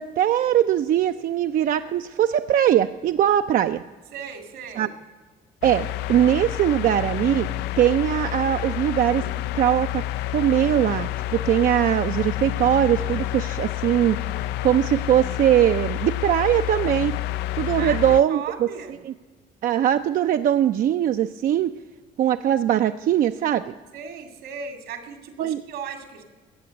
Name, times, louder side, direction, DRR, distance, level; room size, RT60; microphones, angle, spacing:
voice 1, 0.0-3.8 4.8-4.9 5.6-7.5 7.8-9.2 9.5-10.0 10.3-14.2 14.6-17.1 17.5-18.7 19.1-19.2 19.6-21.7 22.2-23.7 25.4-25.6, right 11 dB, 55° right, 9 dB, 0.5 m, -21 dB
voice 2, 4.1-4.9 17.8-18.9 23.9-26.2, right 6 dB, 80° right, 7 dB, 2.3 m, -36 dB
sound 1, 5.6-18.2, left 15 dB, 85° left, 0.4 m, -29 dB
16.5 x 6.9 x 9.4 m, 1.3 s
cardioid pair, 110°, 17 cm